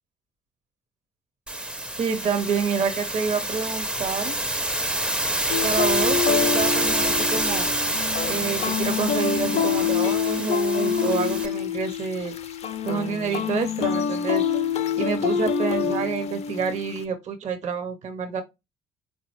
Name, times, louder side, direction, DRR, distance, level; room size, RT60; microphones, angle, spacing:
sound 1, 1.5-11.5, right 1 dB, 5° right, 0.4 m, -27 dB
voice 1, 2.0-4.4 5.6-7.7 8.2-12.3 12.8-14.4 15.0-18.4, right 6 dB, 55° right, 0.7 m, -28 dB
sound 2, 5.5-17.0, left 7 dB, 45° left, 0.4 m, -26 dB
3.8 x 2.2 x 2.8 m
hypercardioid pair, 50°, 15 cm